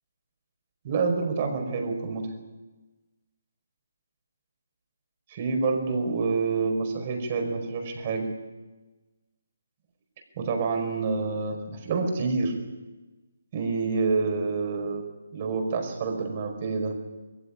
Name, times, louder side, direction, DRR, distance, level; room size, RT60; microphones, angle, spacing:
voice 1, 0.8-2.3 5.3-8.3 10.4-12.6 13.5-15.1 15.3-16.9, right 4 dB, 35° right, 4 dB, 5.0 m, -27 dB
21.5 x 15.5 x 10.0 m, 1.2 s
hypercardioid pair, 160°, 0 cm